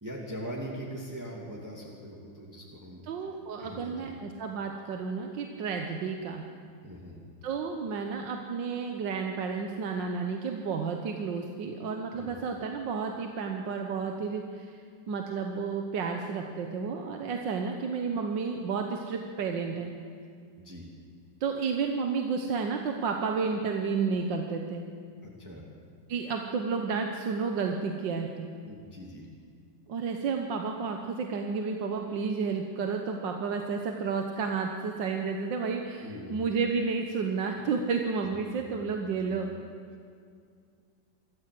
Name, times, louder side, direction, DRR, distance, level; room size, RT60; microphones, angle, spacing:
voice 1, 0.0-3.0 3.6-4.1 6.8-7.2 12.1-12.3 20.6-20.8 25.2-25.6 28.6-29.3 36.0-36.4 38.5-38.6 39.0-39.4, equal, 10° right, -3 dB, 2.4 m, -41 dB
voice 2, 3.1-6.5 7.4-14.8 15.1-19.9 21.4-24.8 26.1-28.5 29.9-39.5, right 5 dB, 80° right, 3 dB, 1.8 m, -31 dB
24.5 x 14.0 x 7.7 m, 2.3 s
omnidirectional pair, 2.0 m